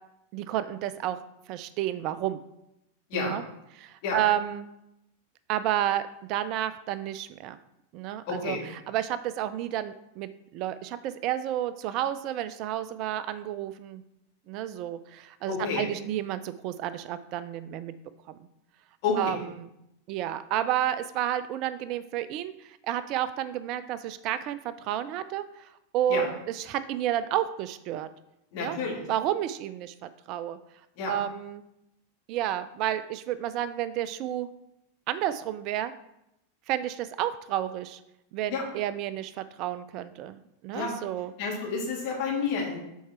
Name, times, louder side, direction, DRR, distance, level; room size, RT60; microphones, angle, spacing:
voice 1, 0.3-1.2 1.5-2.4 3.1-3.4 3.8-4.7 5.5-7.6 7.9-8.6 8.9-14.0 14.5-17.9 18.3-18.4 19.2-19.7 20.1-28.1 28.6-28.8 29.1-30.6 31.1-31.6 32.3-34.5 35.1-35.9 36.7-38.0 38.3-41.3, right 11 dB, 40° right, 13 dB, 0.4 m, -31 dB
voice 2, 8.3-8.6 15.5-15.9 19.0-19.4 26.1-26.2 28.5-29.1 31.0-31.1 38.5-38.6 40.7-40.9 41.4-42.8, left 4 dB, 45° left, -3 dB, 2.5 m, -30 dB
7.2 x 4.7 x 4.2 m, 0.85 s
figure-of-eight pair, 90°, 0 cm